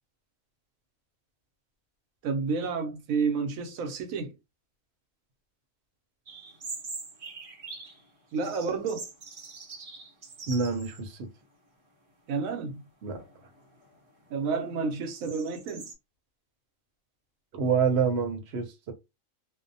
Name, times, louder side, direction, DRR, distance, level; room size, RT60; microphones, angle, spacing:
voice 1, 2.2-4.3 8.3-9.1 12.3-12.8 14.3-15.9, right 5 dB, 85° right, 1.1 m, -30 dB
sound 1, 6.3-8.0 8.4-11.1 11.4-11.5 12.3-12.6 13.1-15.9, right 4 dB, 35° right, 0.5 m, -43 dB
voice 2, 10.5-11.3 13.0-13.2 17.5-18.9, right 6 dB, 60° right, 0.9 m, -27 dB
2.6 x 2.1 x 2.6 m
omnidirectional pair, 1.4 m